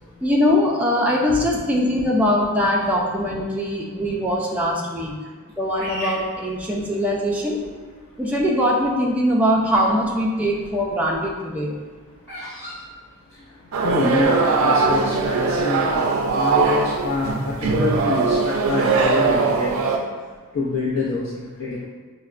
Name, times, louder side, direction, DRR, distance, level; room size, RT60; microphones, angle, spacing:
voice 1, 0.2-5.2 5.6-7.6 8.2-11.8, equal, 5° right, -3 dB, 0.3 m, -21 dB
voice 2, 4.8-5.6 6.6-6.7 8.1-8.2 9.5-9.6 10.5-10.7 11.9-21.8, left 3 dB, 65° left, -7 dB, 0.5 m, -28 dB
Bird vocalization bird call bird song, 5.7-7.3 7.9-8.3 9.1-10.0 10.3-13.8 14.1-14.2 14.3-14.7 15.1-17.0, equal, 10° left, 1.2 m, -36 dB
sound 1, 13.7-20.0, right 4 dB, 80° right, 0.4 m, -20 dB
5.4 x 2.1 x 2.4 m, 1.4 s
head